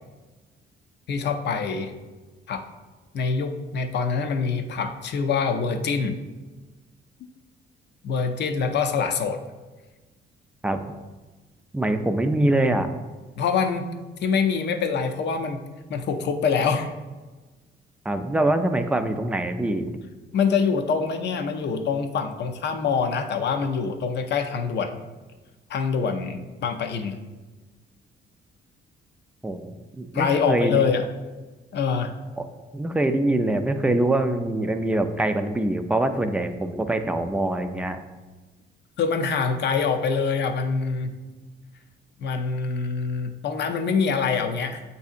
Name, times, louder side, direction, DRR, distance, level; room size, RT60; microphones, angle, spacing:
voice 1, 1.1-1.9 2.5-2.6 3.1-6.2 8.0-9.4 13.4-13.9 14.2-16.9 20.3-25.0 25.7-27.2 30.1-31.1 31.7-32.1 39.0-41.2 42.2-44.8, left 5 dB, 60° left, 6 dB, 0.5 m, -25 dB
voice 2, 11.7-12.9 18.1-19.9 29.4-30.8 32.4-32.5 32.7-38.0, right 1 dB, 5° right, 7 dB, 0.3 m, -24 dB
8.0 x 2.7 x 2.5 m, 1.2 s
cardioid pair, 90°, 20 cm